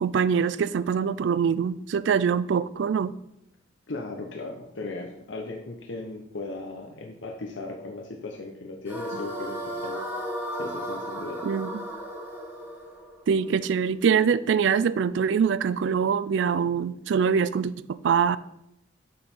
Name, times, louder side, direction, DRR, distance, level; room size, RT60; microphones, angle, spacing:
voice 1, 0.0-3.1 11.4-11.8 13.3-18.4, right 6 dB, 70° right, 16 dB, 0.3 m, -24 dB
voice 2, 3.9-10.0 10.6-11.4, left 3 dB, 85° left, 2 dB, 0.8 m, -37 dB
sound 1, 8.9-14.1, equal, 10° right, 1.4 m, -35 dB
6.5 x 5.4 x 4.4 m, 0.80 s
head